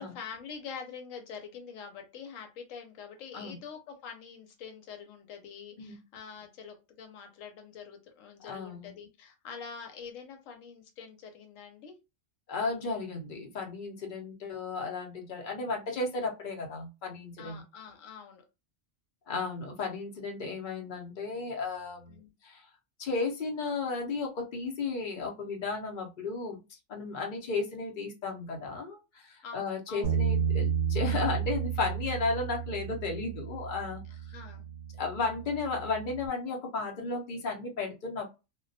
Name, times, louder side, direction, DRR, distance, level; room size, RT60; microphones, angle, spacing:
voice 1, 0.0-11.9 17.4-18.4 22.1-22.3 29.4-30.1 34.3-34.7, left 6 dB, 85° left, 4 dB, 1.0 m, -45 dB
voice 2, 8.4-8.9 12.5-17.6 19.3-22.2 22.4-22.7 23.0-34.0 35.0-38.3, left 3 dB, 50° left, 1 dB, 0.7 m, -34 dB
Bass guitar, 30.0-36.3, right 7 dB, 65° right, 0.7 m, -32 dB
2.2 x 2.1 x 2.6 m, 0.27 s
omnidirectional pair, 1.3 m